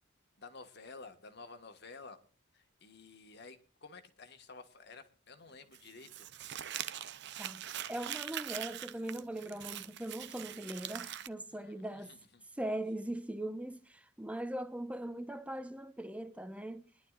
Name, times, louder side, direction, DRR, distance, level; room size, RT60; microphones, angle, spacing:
voice 1, 0.4-2.2 2.5-6.3 9.4-9.7 11.5-12.4, left 4 dB, 60° left, 1.5 m, -53 dB
Crumpling crinkling, 5.7-11.3, right 11 dB, 60° right, 0.6 m, -42 dB
voice 2, 7.4-12.2 12.6-16.9, right 1 dB, 5° right, 0.9 m, -40 dB
22.5 x 11.5 x 2.4 m
head